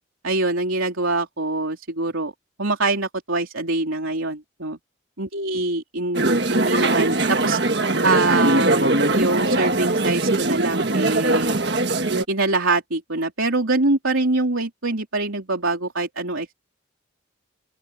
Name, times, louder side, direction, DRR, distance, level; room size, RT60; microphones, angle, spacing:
voice 1, 0.2-2.3 2.6-4.8 5.2-7.6 8.0-11.5 12.3-16.5, right 2 dB, 90° right, 3.9 m, -24 dB
sound 1, 6.1-12.2, right 2 dB, 55° right, 1.6 m, -21 dB
open air
head